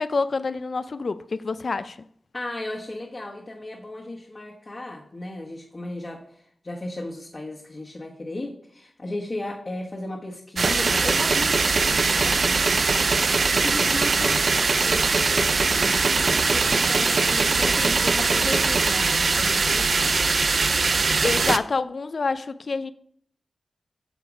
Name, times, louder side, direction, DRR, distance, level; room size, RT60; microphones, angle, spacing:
voice 1, 0.0-2.0 21.2-22.9, left 4 dB, 55° left, 0.5 m, -27 dB
voice 2, 2.3-14.4 14.8-20.3, left 2 dB, 35° left, 1.3 m, -35 dB
sound 1, 10.6-21.6, right 4 dB, 55° right, 0.4 m, -21 dB
9.2 x 6.7 x 4.9 m
wide cardioid pair, 105°, 0 cm